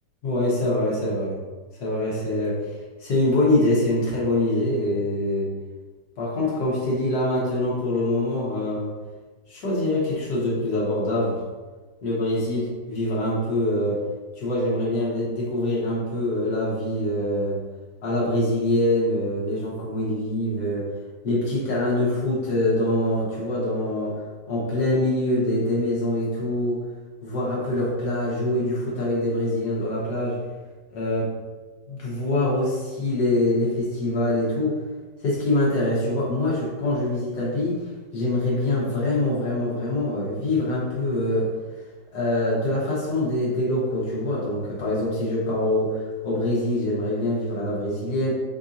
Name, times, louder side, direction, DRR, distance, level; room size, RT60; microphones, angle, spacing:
voice 1, 0.2-1.3 1.8-2.6 3.0-5.5 6.2-8.9 9.5-11.4 12.0-14.0 14.4-17.6 18.0-20.9 21.2-24.2 24.5-26.8 27.2-30.4 30.9-31.3 31.9-34.8 35.2-41.5 42.1-48.3, left 1 dB, 65° left, -5 dB, 1.7 m, -24 dB
5.8 x 2.7 x 2.5 m, 1.3 s
omnidirectional pair, 1.9 m